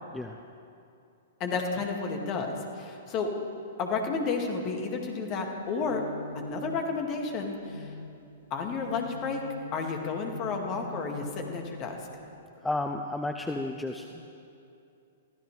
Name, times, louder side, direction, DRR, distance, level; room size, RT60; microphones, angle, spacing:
voice 1, 1.4-3.3 3.8-6.0 6.3-7.9 8.5-9.4 9.7-12.0, left 4 dB, 35° left, 2 dB, 2.2 m, -31 dB
sound 1, 5.5-12.4, left 2 dB, 85° left, 1.9 m, -45 dB
voice 2, 12.6-14.4, left 2 dB, 5° left, 4 dB, 0.7 m, -33 dB
23.5 x 15.0 x 3.4 m, 2.6 s
figure-of-eight pair, 110°, 0 cm